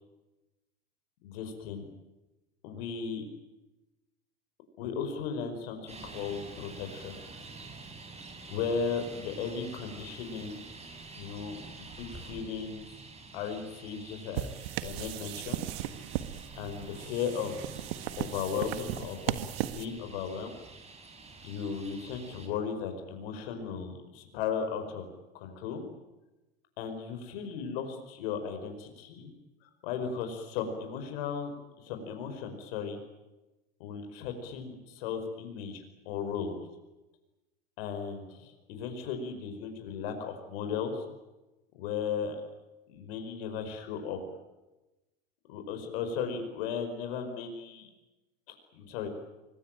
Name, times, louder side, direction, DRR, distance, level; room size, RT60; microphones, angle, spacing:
voice 1, 1.2-1.9 2.6-3.2 4.8-7.2 8.5-10.6 11.2-11.6 12.0-13.1 13.3-14.5 14.8-15.6 16.6-17.6 18.2-19.4 19.7-20.5 21.4-25.1 25.3-25.8 26.8-29.3 29.6-33.0 33.8-36.6 37.8-41.0 41.7-42.4 42.9-44.4 45.5-47.9 48.5-49.1, left 6 dB, 70° left, 6 dB, 5.2 m, -36 dB
Traffic noise roadway noise, 5.9-22.5, right 3 dB, 20° right, 6.3 m, -48 dB
sound 1, 14.3-19.8, right 13 dB, 70° right, 1.7 m, -36 dB
25.0 x 21.5 x 8.9 m, 1.0 s
hypercardioid pair, 90°, 31 cm